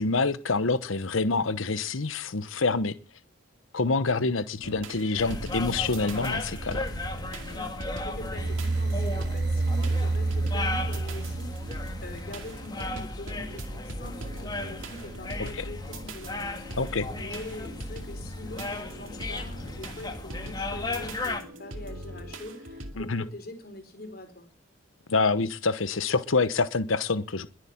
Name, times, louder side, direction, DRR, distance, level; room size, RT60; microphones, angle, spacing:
voice 1, 0.0-2.9 3.7-6.9 15.6-15.7 16.8-17.1 23.0-23.2 25.1-27.5, left 3 dB, 90° left, 1.0 m, -26 dB
sound 1, 4.6-22.9, equal, 90° right, 2.4 m, -41 dB
sound 2, 5.2-21.4, left 2 dB, 20° left, 2.0 m, -36 dB
voice 2, 7.5-16.7 17.2-24.5, left 1 dB, 50° left, 4.4 m, -43 dB
sound 3, 8.4-12.5, right 2 dB, 55° right, 0.7 m, -28 dB
21.5 x 8.2 x 7.2 m
head